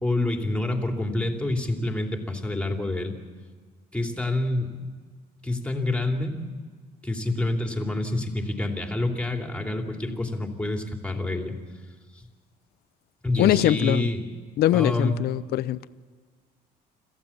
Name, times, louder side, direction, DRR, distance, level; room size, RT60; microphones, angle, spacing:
voice 1, 0.0-3.1 3.9-4.7 5.4-6.4 7.0-11.6 12.2-12.3 13.2-14.3 14.7-15.2, left 2 dB, 5° left, 2.9 m, -27 dB
voice 2, 13.4-14.1 14.6-15.9, left 13 dB, 70° left, 0.7 m, -22 dB
27.0 x 15.0 x 7.2 m
cardioid pair, 110°, 17 cm